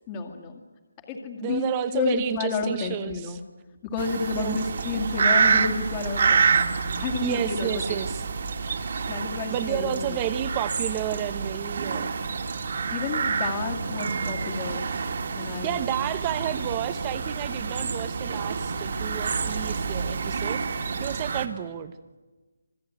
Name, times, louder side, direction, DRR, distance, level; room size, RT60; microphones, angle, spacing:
voice 1, 0.1-0.6 1.1-1.7 1.9-3.4 3.8-6.7 6.9-8.0 9.1-10.2 11.9-12.1 12.9-14.9 15.3-15.8, left 4 dB, 20° left, 4 dB, 2.0 m, -30 dB
voice 2, 1.4-3.4 4.4-4.5 7.2-8.2 9.5-12.1 15.6-21.9, right 11 dB, 20° right, 12 dB, 0.9 m, -31 dB
sound 1, 4.0-21.5, right 5 dB, 50° right, 2.4 m, -28 dB
25.5 x 20.0 x 9.3 m, 1.2 s
hypercardioid pair, 165°, 0 cm